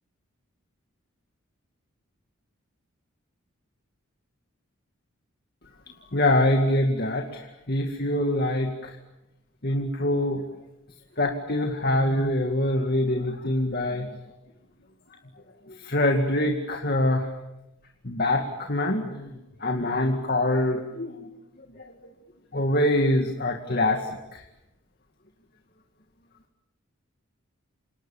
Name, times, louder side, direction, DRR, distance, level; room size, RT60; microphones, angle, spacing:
voice 1, 6.1-8.9 9.6-10.4 11.2-14.1 15.8-17.3 18.0-19.3 19.6-21.2 21.8-21.9 22.5-24.0 24.3-24.4, left 1 dB, 45° left, 3 dB, 2.2 m, -24 dB
29.0 x 27.5 x 7.4 m, 0.92 s
head